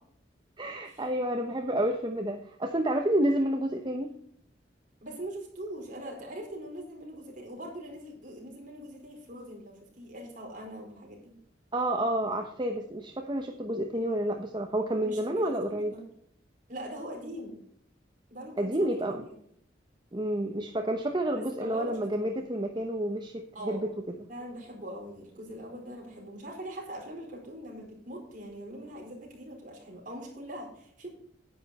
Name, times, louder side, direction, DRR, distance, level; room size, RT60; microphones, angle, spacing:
voice 1, 0.6-4.1 11.7-15.9 18.6-19.2 20.1-23.9, right 1 dB, 25° right, 4 dB, 0.9 m, -29 dB
voice 2, 5.0-11.3 15.0-16.0 16.7-17.6 18.3-19.3 21.3-22.3 23.5-23.9 24.1-31.1, right 1 dB, 45° right, -1 dB, 4.5 m, -42 dB
10.5 x 9.2 x 4.2 m, 0.68 s
head